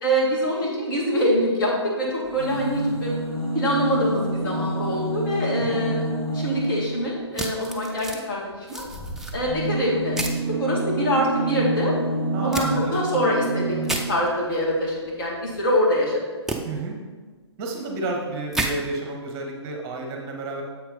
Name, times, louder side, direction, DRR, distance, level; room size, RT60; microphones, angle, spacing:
voice 1, 0.0-6.0 6.3-8.9 9.3-11.9 12.4-16.2, equal, 45° left, -3 dB, 2.1 m, -24 dB
sound 1, 2.2-7.1 8.8-14.2 15.2-15.3 15.5-15.6, right 2 dB, 20° left, 1.9 m, -28 dB
sound 2, 7.3-8.2 8.7-9.3 10.1-10.4 12.5-12.7 13.8-14.0 16.5-16.6 18.5-18.7, right 2 dB, 5° right, 0.3 m, -29 dB
voice 2, 12.3-13.0 16.6-17.0 17.6-20.6, right 2 dB, 25° right, 1 dB, 1.1 m, -31 dB
7.3 x 4.5 x 4.0 m, 1.4 s
figure-of-eight pair, 125°, 15 cm